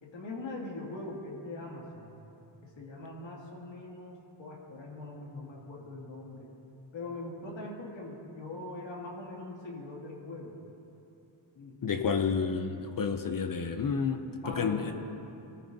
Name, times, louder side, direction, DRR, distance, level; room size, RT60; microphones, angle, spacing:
voice 1, 0.0-2.1 2.6-6.5 6.9-10.6 11.5-11.8 14.4-14.9, left 2 dB, 65° left, -3 dB, 2.5 m, -42 dB
voice 2, 11.8-14.9, left 5 dB, 45° left, 7 dB, 0.6 m, -30 dB
23.0 x 13.5 x 2.7 m, 2.8 s
wide cardioid pair, 170°, 49 cm